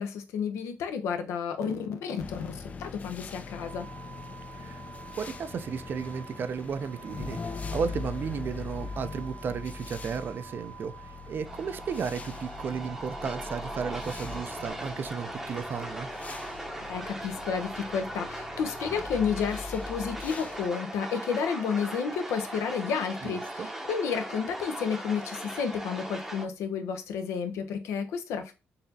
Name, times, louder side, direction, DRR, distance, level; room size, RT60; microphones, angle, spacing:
voice 1, 0.0-3.9 16.9-28.5, left 6 dB, 90° left, 0.6 m, -31 dB
sound 1, 2.2-20.7, left 4 dB, 30° left, 0.4 m, -42 dB
sound 2, 3.4-14.7, right 8 dB, 70° right, 0.9 m, -49 dB
voice 2, 5.2-16.1 23.2-23.7, right 6 dB, 50° right, 0.4 m, -34 dB
sound 3, 11.4-26.5, right 1 dB, 5° right, 0.7 m, -39 dB
4.0 x 2.8 x 2.6 m
cardioid pair, 100°, 5 cm